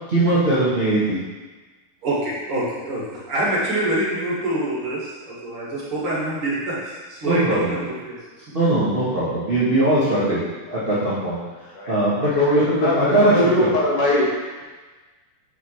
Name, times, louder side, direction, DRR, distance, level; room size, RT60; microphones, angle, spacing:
voice 1, 0.1-1.2 7.2-7.9 8.5-10.4 10.7-13.7, right 1 dB, 70° right, -10 dB, 0.5 m, -21 dB
voice 2, 2.0-8.5, right 1 dB, 50° right, -7 dB, 2.3 m, -26 dB
voice 3, 12.3-14.6, left 1 dB, 80° left, -5 dB, 3.1 m, -21 dB
7.7 x 6.5 x 3.2 m, 1.3 s
omnidirectional pair, 3.5 m